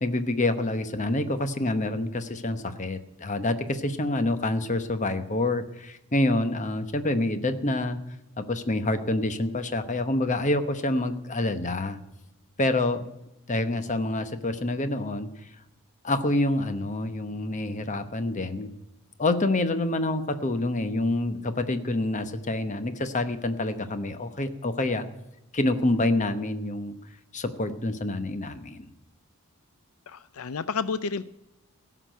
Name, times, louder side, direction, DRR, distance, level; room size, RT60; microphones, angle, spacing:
voice 1, 0.0-8.0 8.4-12.0 12.6-13.0 13.5-15.3 16.0-18.7 19.2-25.1 25.5-27.0 27.3-28.9, left 2 dB, 35° left, 10 dB, 0.9 m, -27 dB
voice 2, 30.1-31.3, left 5 dB, 75° left, 15 dB, 0.5 m, -30 dB
16.5 x 6.0 x 9.2 m, 0.91 s
head